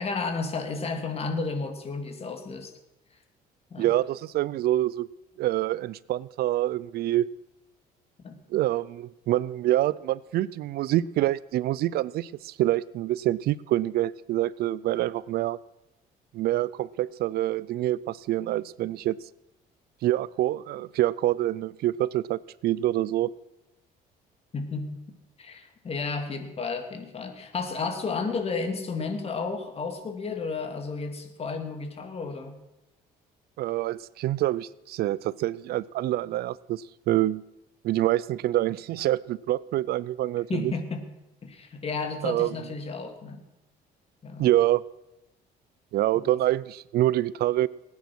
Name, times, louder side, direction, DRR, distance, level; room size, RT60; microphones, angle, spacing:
voice 1, 0.0-2.7 3.7-3.9 8.2-8.4 24.5-25.0 25.4-32.6 40.5-41.1 41.4-43.4 44.2-44.5 46.1-46.3, left 4 dB, 35° left, 6 dB, 2.6 m, -32 dB
voice 2, 3.8-5.1 5.4-7.3 8.5-15.6 16.3-19.2 20.0-23.3 33.6-37.4 37.8-40.7 42.2-42.5 44.4-44.8 45.9-47.7, right 14 dB, 70° right, 21 dB, 0.5 m, -26 dB
19.5 x 9.6 x 6.1 m, 0.95 s
cardioid pair, 110°, 17 cm